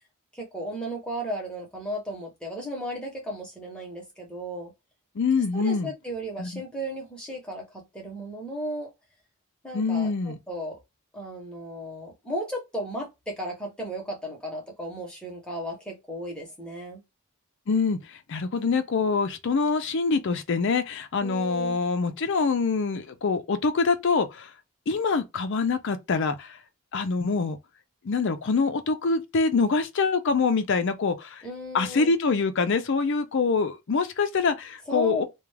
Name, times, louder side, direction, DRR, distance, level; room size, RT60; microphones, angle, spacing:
voice 1, 0.3-4.7 5.5-8.9 9.6-10.8 11.1-17.0 21.2-21.8 31.4-32.1 34.9-35.2, equal, 5° left, 0.8 m, -35 dB
voice 2, 5.2-5.9 6.4-6.6 9.7-10.4 17.7-24.5 24.9-26.6 26.9-27.6 28.0-31.4 31.7-35.2, left 4 dB, 55° left, 0.4 m, -25 dB
2.3 x 2.3 x 3.2 m
head